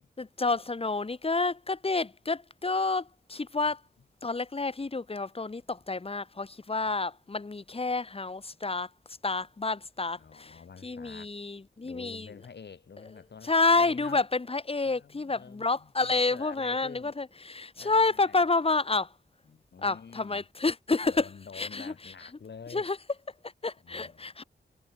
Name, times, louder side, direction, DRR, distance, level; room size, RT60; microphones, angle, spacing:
voice 1, 0.2-3.8 4.2-8.9 9.2-12.3 13.4-19.1 19.8-21.3 21.5-22.1 22.7-23.0 23.4-24.4, left 3 dB, 30° left, 2.9 m, -29 dB
voice 2, 10.2-11.3 11.8-14.2 14.8-17.1 17.8-18.5 19.5-20.4 21.0-22.9 23.8-24.3, left 6 dB, 70° left, 6.3 m, -48 dB
wide cardioid pair, 105°, 18 cm